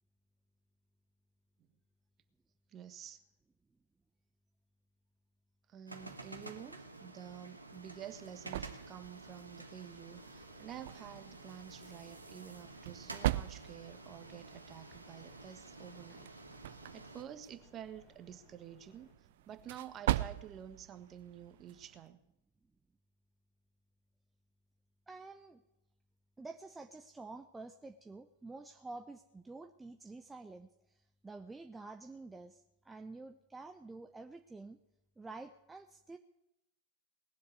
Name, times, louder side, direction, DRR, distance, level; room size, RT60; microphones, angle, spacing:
voice 1, 2.7-3.2 5.7-16.3 16.7-19.1 19.4-22.2, right 9 dB, 30° right, 10 dB, 1.4 m, -50 dB
sound 1, 5.9-17.2, right 2 dB, 80° right, 1.7 m, -51 dB
sound 2, 7.6-22.1, right 14 dB, 55° right, 0.5 m, -42 dB
sound 3, 10.0-19.1, left 3 dB, 40° left, 4.6 m, -66 dB
voice 2, 25.1-25.6 26.4-34.8 35.2-36.2, right 3 dB, 10° right, 6 dB, 0.8 m, -49 dB
19.5 x 7.6 x 9.6 m, 0.85 s
figure-of-eight pair, 90°, 0 cm